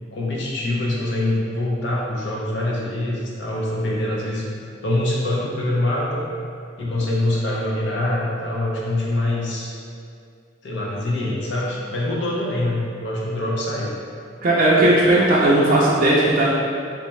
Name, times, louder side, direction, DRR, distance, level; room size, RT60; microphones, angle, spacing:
voice 1, 0.1-4.5 4.8-6.2 6.8-9.7 10.6-13.9, left 1 dB, 60° left, -4 dB, 0.6 m, -24 dB
voice 2, 14.4-16.5, right 1 dB, 45° right, -7 dB, 0.4 m, -16 dB
3.3 x 2.8 x 3.1 m, 2.3 s
head